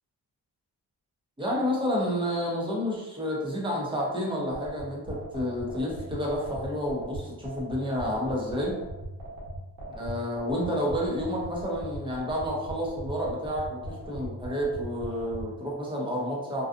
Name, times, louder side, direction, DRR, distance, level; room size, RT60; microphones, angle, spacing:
voice 1, 1.4-8.8 9.9-16.6, equal, 10° right, -4 dB, 0.6 m, -30 dB
sound 1, 4.5-15.5, right 1 dB, 55° right, 1.1 m, -38 dB
2.6 x 2.3 x 2.5 m, 1.0 s
cardioid pair, 120°, 42 cm